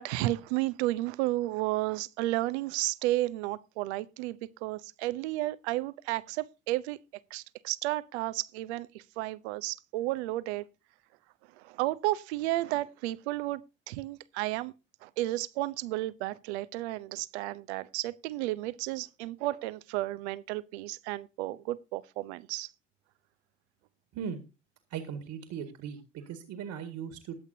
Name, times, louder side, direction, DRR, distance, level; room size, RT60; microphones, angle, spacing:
voice 1, 0.0-7.0 7.3-10.7 11.6-13.6 13.9-14.7 15.0-22.7, right 17 dB, 70° right, 0.7 m, -32 dB
voice 2, 24.9-27.4, right 7 dB, 55° right, 1.9 m, -38 dB
20.5 x 8.2 x 2.7 m
hypercardioid pair, 55°, 34 cm